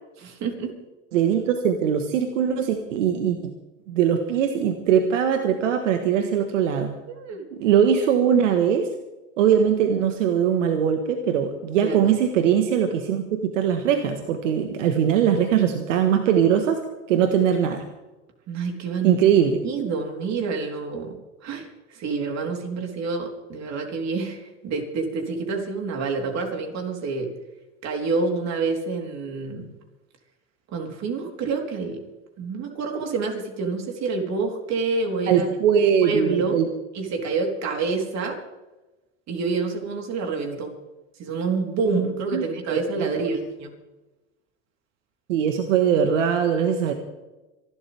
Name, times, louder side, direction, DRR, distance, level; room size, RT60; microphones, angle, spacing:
voice 1, 0.2-0.7 7.1-7.4 11.8-12.1 18.5-19.2 19.6-21.1 21.4-27.3 27.8-29.7 30.7-32.0 32.4-35.5 36.0-36.6 36.9-38.4 39.3-40.7 41.2-43.7, right 4 dB, 45° right, 2 dB, 3.9 m, -27 dB
voice 2, 1.1-3.5 3.9-6.9 7.6-8.9 9.4-16.8 17.1-17.8 19.0-19.6 35.3-36.7 42.3-43.3 45.3-46.9, right 8 dB, 80° right, 6 dB, 1.6 m, -21 dB
26.5 x 12.0 x 3.6 m, 1.1 s
hypercardioid pair, 100°, 37 cm